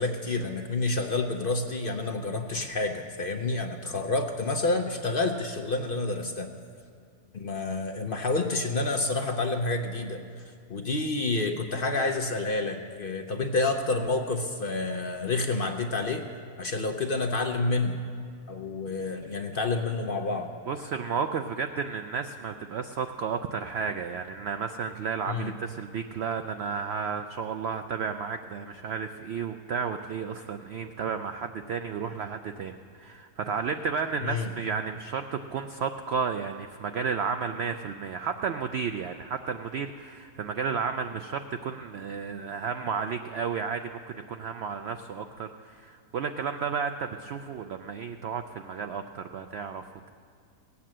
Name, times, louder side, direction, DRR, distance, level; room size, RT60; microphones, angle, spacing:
voice 1, 0.0-6.5 7.3-10.2 10.7-16.2 16.6-18.0 18.5-20.5 25.3-25.5 34.2-34.5, left 3 dB, 50° left, 4 dB, 0.7 m, -29 dB
voice 2, 20.7-50.1, right 6 dB, 70° right, 8 dB, 0.6 m, -32 dB
17.5 x 8.5 x 7.4 m, 2.2 s
omnidirectional pair, 1.6 m